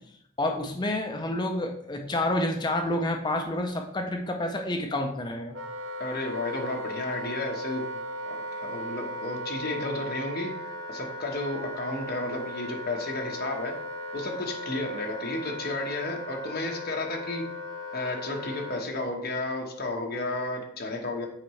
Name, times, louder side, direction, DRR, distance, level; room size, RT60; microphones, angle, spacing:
voice 1, 0.4-5.5, left 1 dB, 20° left, 3 dB, 0.5 m, -29 dB
Wind instrument woodwind instrument, 5.5-18.9, equal, 70° right, 0.7 m, -37 dB
voice 2, 6.0-7.8 8.2-10.5 10.9-13.7 14.1-17.4 17.9-21.3, left 2 dB, 45° left, 0 dB, 1.1 m, -32 dB
7.8 x 4.6 x 3.1 m, 0.75 s
head